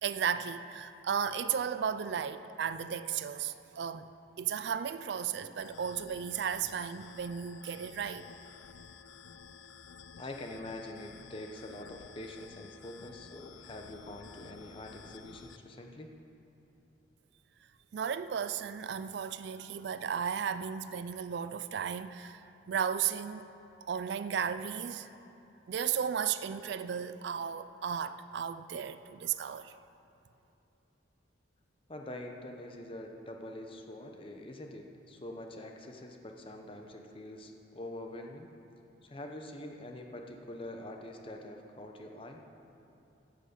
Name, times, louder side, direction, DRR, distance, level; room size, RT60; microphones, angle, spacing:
voice 1, 0.0-4.1 4.4-8.3 17.9-23.5 23.9-25.1 25.7-29.7, right 7 dB, 65° right, 0.3 m, -34 dB
sound 1, 5.6-15.6, left 6 dB, 80° left, 0.4 m, -52 dB
voice 2, 10.2-16.1 31.9-38.5 39.0-42.4, left 1 dB, 30° left, 0.8 m, -45 dB
9.6 x 7.8 x 6.7 m
head